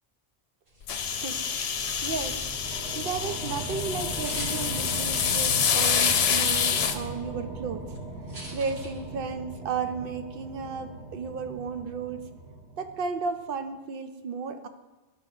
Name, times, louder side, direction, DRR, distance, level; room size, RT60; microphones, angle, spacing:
sound 1, 0.7-9.4, right 1 dB, 85° right, 2.2 m, -48 dB
sound 2, 0.9-7.0, left 7 dB, 75° left, 0.8 m, -27 dB
sound 3, 0.9-13.4, right 2 dB, 20° right, 1.5 m, -39 dB
voice 1, 1.7-2.4 2.9-8.0 8.5-12.3 12.8-14.7, right 5 dB, 65° right, 7 dB, 0.8 m, -34 dB
12.0 x 4.5 x 2.7 m, 1.2 s
omnidirectional pair, 1.1 m